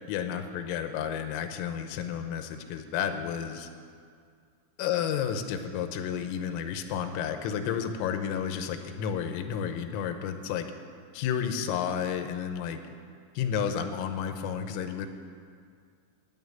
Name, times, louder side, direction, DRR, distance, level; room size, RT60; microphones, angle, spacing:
voice 1, 0.1-3.7 4.8-10.7 11.1-12.8 13.4-15.1, left 8 dB, 85° left, 7 dB, 3.4 m, -31 dB
11.5 x 9.3 x 9.5 m, 2.2 s
omnidirectional pair, 6.0 m